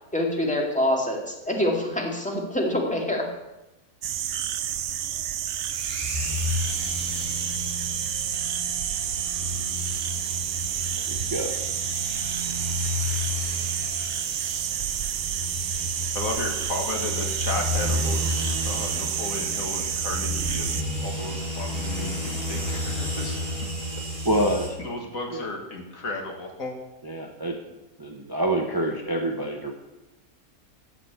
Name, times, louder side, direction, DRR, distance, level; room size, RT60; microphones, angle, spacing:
voice 1, 0.1-3.3, left 1 dB, 5° left, 0 dB, 2.1 m, -25 dB
sound 1, 4.0-20.8, right 10 dB, 65° right, 0.8 m, -30 dB
sound 2, 5.7-24.7, left 1 dB, 35° right, 4.2 m, -31 dB
voice 2, 11.1-11.5 24.2-24.8 25.3-25.5 27.0-27.6 28.0-29.7, right 1 dB, 15° right, 2 dB, 0.9 m, -27 dB
voice 3, 16.1-18.2 18.6-23.4 24.8-26.7, left 2 dB, 60° left, 2 dB, 2.2 m, -33 dB
13.0 x 5.8 x 8.1 m, 0.98 s
omnidirectional pair, 1.6 m